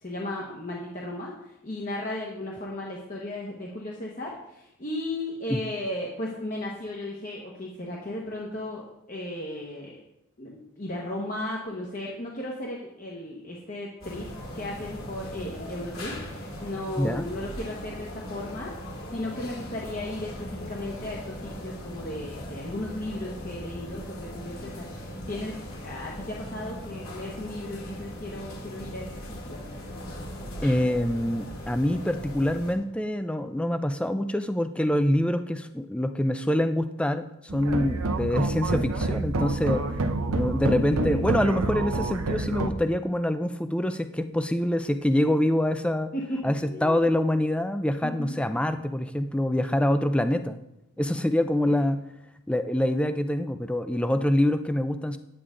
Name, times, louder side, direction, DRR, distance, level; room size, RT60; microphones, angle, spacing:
voice 1, 0.0-10.0 10.4-14.3 14.5-29.6 37.5-37.6 40.7-41.2 46.1-47.1 48.0-48.4, left 1 dB, 40° left, -3 dB, 1.2 m, -35 dB
sound 1, 14.0-32.7, equal, 75° left, 2.6 m, -39 dB
voice 2, 17.0-17.3 30.6-37.3 37.5-39.8 40.3-46.1 46.4-50.6 51.0-52.0 52.5-55.2, left 1 dB, 5° left, 9 dB, 0.4 m, -25 dB
sound 2, 37.5-42.7, right 2 dB, 85° right, 0.8 m, -28 dB
9.7 x 8.7 x 3.8 m, 0.86 s
head